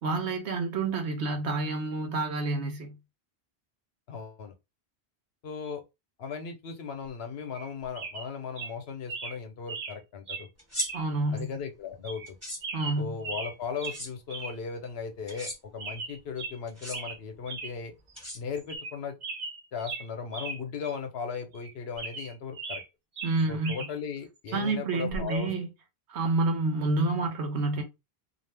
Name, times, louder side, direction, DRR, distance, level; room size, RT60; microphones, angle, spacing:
voice 1, 0.0-3.0 10.9-11.5 12.7-13.2 23.2-23.9 24.5-25.7 26.1-27.8, right 3 dB, 85° right, 1.1 m, -28 dB
voice 2, 4.1-4.5 5.4-5.8 6.2-10.5 11.3-12.4 13.0-17.9 18.3-19.2 19.7-22.8 23.5-25.5, left 6 dB, 70° left, 1.0 m, -37 dB
sound 1, 7.5-7.7 8.0-8.3 8.6-8.7 9.1-9.4 9.7-10.0 10.3-10.5 10.8-11.0 11.4-11.5 12.0-12.3 12.6-13.5 13.8-14.0 14.3-14.6 14.9-15.0 15.3-15.5 15.8-16.6 16.9-17.2 17.5-17.7 18.1-18.2 18.6-19.0 19.2-20.6 20.9-21.0 21.5-22.9 23.2-23.9 25.1-25.3, right 4 dB, 55° right, 0.7 m, -38 dB
sound 2, 10.6-10.9 12.3-12.6 13.8-14.1 15.3-15.6 16.7-17.0 18.2-18.8, equal, 15° right, 1.4 m, -36 dB
2.6 x 2.4 x 3.2 m
omnidirectional pair, 1.1 m